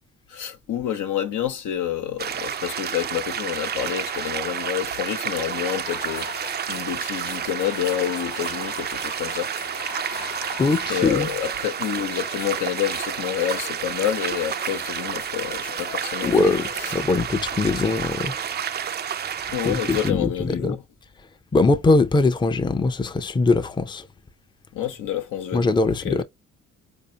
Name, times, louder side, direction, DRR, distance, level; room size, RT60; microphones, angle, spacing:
voice 1, 0.3-9.5 10.9-16.9 19.5-20.8 24.7-26.2, left 10 dB, 85° left, 1.0 m, -28 dB
sound 1, 2.2-20.1, right 8 dB, 35° right, 0.4 m, -30 dB
sound 2, 5.8-16.9, left 6 dB, 40° left, 0.9 m, -41 dB
voice 2, 10.6-11.3 16.2-18.6 19.3-19.4 19.6-20.7 21.5-24.1 25.5-26.2, left 3 dB, 15° left, 0.5 m, -21 dB
4.1 x 2.7 x 2.8 m
cardioid pair, 90°, 30 cm